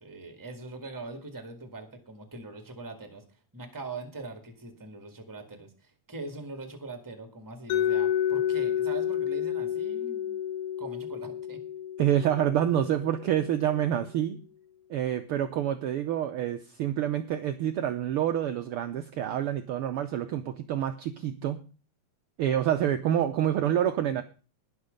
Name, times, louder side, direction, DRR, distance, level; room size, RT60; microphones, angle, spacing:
voice 1, 0.0-10.4 10.8-11.6, right 3 dB, 10° right, 7 dB, 1.5 m, -42 dB
Mallet percussion, 7.7-13.5, left 10 dB, 85° left, 2.4 m, -30 dB
voice 2, 12.0-14.4 14.9-21.6 22.4-24.2, right 10 dB, 75° right, 8 dB, 1.3 m, -27 dB
19.5 x 6.6 x 5.2 m, 0.35 s
omnidirectional pair, 3.4 m